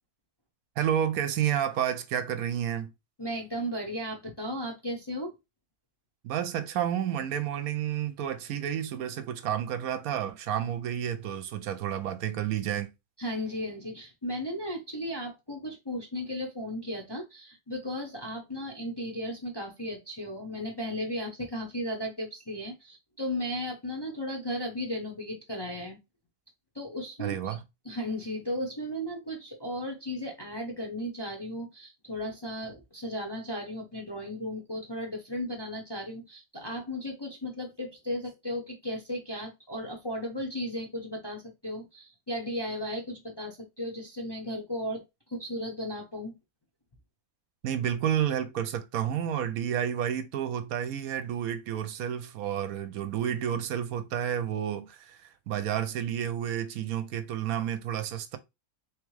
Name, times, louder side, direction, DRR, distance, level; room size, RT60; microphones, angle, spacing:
voice 1, 0.8-2.9 6.2-12.9 27.2-27.6 47.6-58.4, right 9 dB, 75° right, 1.0 m, -30 dB
voice 2, 3.2-5.3 13.2-26.0 26.7-27.5 27.8-46.3, equal, 25° left, 0.6 m, -35 dB
3.5 x 3.2 x 3.1 m
omnidirectional pair, 1.6 m